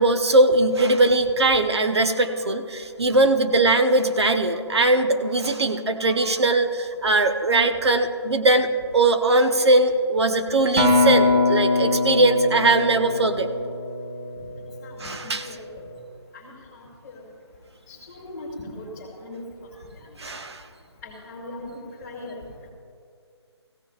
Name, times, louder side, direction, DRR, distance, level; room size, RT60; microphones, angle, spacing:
voice 1, 0.0-8.7 8.9-13.5 15.0-15.4 20.2-20.6, right 2 dB, 65° right, 6 dB, 1.1 m, -20 dB
Acoustic guitar, 10.8-15.2 15.8-16.0, left 2 dB, 25° right, 2.4 m, -23 dB
voice 2, 14.4-15.0 15.5-15.8 16.3-17.2 17.9-19.5 20.0-20.1 21.0-22.4, left 2 dB, 15° left, -7 dB, 2.5 m, -40 dB
17.5 x 16.0 x 2.5 m, 2.3 s
figure-of-eight pair, 165°, 15 cm